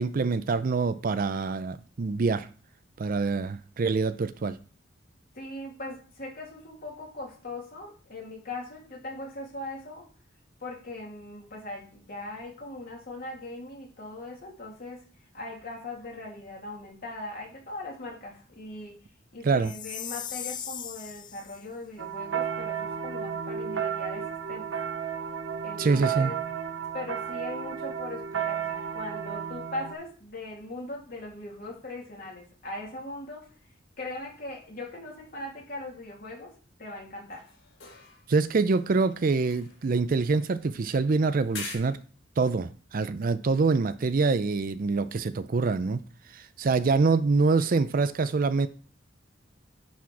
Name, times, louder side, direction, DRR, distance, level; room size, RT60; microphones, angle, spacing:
voice 1, 0.0-2.5 3.0-4.6 19.4-19.7 25.8-26.3 38.3-42.0 42.4-46.0 46.3-48.7, right 4 dB, 45° right, 0.4 m, -25 dB
voice 2, 5.3-10.0 10.6-15.0 15.3-19.0 19.3-24.7 25.6-26.4 26.9-33.5 34.0-36.5 36.8-37.4, left 2 dB, 50° left, 2.8 m, -40 dB
Chime, 19.6-21.6, left 9 dB, 25° left, 0.3 m, -38 dB
sound 1, 22.0-29.9, right 7 dB, 75° right, 0.7 m, -33 dB
sound 2, 37.3-38.4 38.7-40.8 41.5-41.8, left 4 dB, 90° left, 3.4 m, -44 dB
10.0 x 4.3 x 4.8 m
head